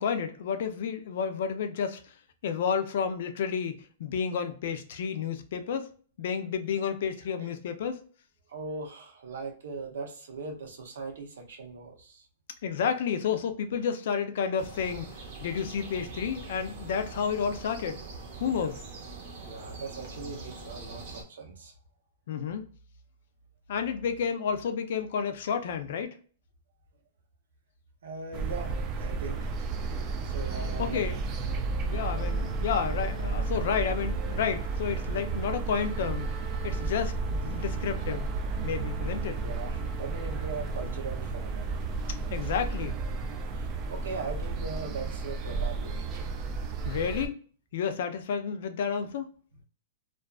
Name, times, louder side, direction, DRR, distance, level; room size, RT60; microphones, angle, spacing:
voice 1, 0.0-2.0 2.4-5.9 6.2-8.0 12.6-18.0 18.4-18.8 22.3-22.7 23.7-26.2 30.8-31.2 31.9-36.3 36.6-38.3 38.6-39.4 42.3-43.0 46.8-47.4 47.7-49.3, left 7 dB, 60° left, 0.4 m, -31 dB
voice 2, 8.5-12.3 19.4-21.7 28.0-29.5 30.2-31.1 33.3-33.4 39.4-41.8 43.5-46.3, right 4 dB, 90° right, 0.8 m, -40 dB
sound 1, 14.6-21.2, right 3 dB, 40° right, 0.7 m, -43 dB
sound 2, 28.3-47.3, right 4 dB, 25° right, 0.3 m, -32 dB
Wind instrument woodwind instrument, 32.0-41.2, right 1 dB, 10° left, 0.7 m, -51 dB
2.5 x 2.3 x 2.3 m
hypercardioid pair, 165°, 0 cm